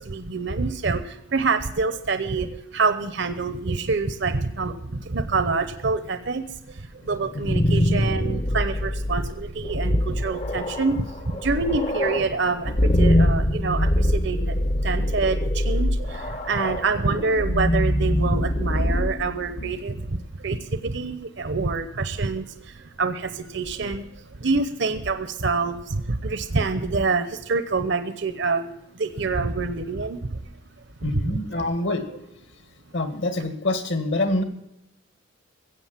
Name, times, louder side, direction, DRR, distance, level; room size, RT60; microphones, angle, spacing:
voice 1, 0.0-14.6 14.8-30.5 31.0-31.3, right 4 dB, 55° right, 10 dB, 0.8 m, -26 dB
sound 1, 7.2-20.1, left 1 dB, 30° left, 0.8 m, -24 dB
voice 2, 31.0-32.1 32.9-34.4, left 2 dB, 60° left, 9 dB, 1.9 m, -26 dB
16.0 x 8.0 x 7.5 m, 0.85 s
head